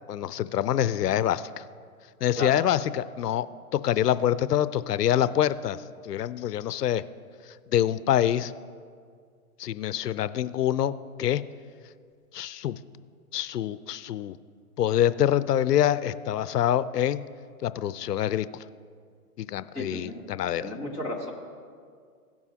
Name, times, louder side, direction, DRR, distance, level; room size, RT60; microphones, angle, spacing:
voice 1, 0.1-1.6 2.2-3.5 3.7-7.0 7.7-8.5 9.6-10.9 11.2-11.4 12.3-12.8 13.3-14.4 14.8-17.2 17.6-18.5 19.4-20.7, left 11 dB, 85° left, 15 dB, 0.6 m, -25 dB
voice 2, 19.7-20.2 20.6-21.3, left 2 dB, 5° right, -4 dB, 0.8 m, -33 dB
17.0 x 7.1 x 2.8 m, 2.1 s
hypercardioid pair, 160°, 46 cm